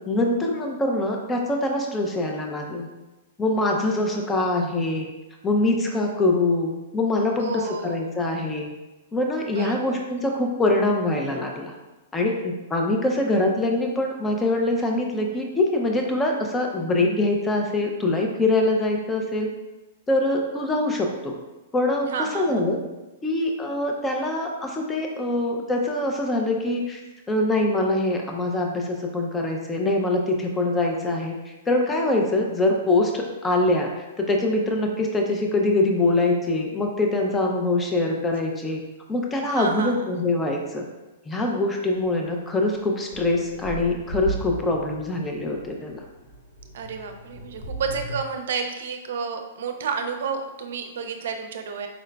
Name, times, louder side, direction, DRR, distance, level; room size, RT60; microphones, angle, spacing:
voice 1, 0.1-2.9 3.4-5.1 5.4-8.7 9.1-11.7 12.1-19.5 20.1-21.3 21.7-22.8 23.2-27.0 27.3-38.8 39.1-40.8 41.3-46.0, left 2 dB, 15° left, 1 dB, 0.5 m, -24 dB
voice 2, 7.4-8.0 9.5-10.0 22.1-22.6 39.5-40.1 46.7-51.9, right 5 dB, 70° right, 5 dB, 0.5 m, -30 dB
sound 1, 42.0-42.1 42.6-48.2, right 2 dB, 55° left, 1.5 m, -36 dB
4.9 x 3.7 x 2.2 m, 1.1 s
hypercardioid pair, 140°, 0 cm